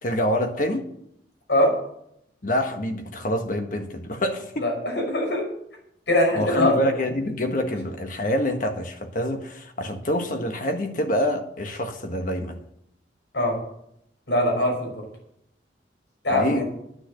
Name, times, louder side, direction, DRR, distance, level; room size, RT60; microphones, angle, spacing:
voice 1, 0.0-0.9 2.4-4.7 6.3-12.6 16.3-16.6, left 1 dB, 45° left, 5 dB, 1.4 m, -26 dB
voice 2, 4.6-5.4 6.1-6.7 13.3-13.5 14.3-14.9 16.2-16.6, left 1 dB, 75° left, 1 dB, 5.5 m, -22 dB
10.5 x 9.7 x 6.6 m, 0.74 s
head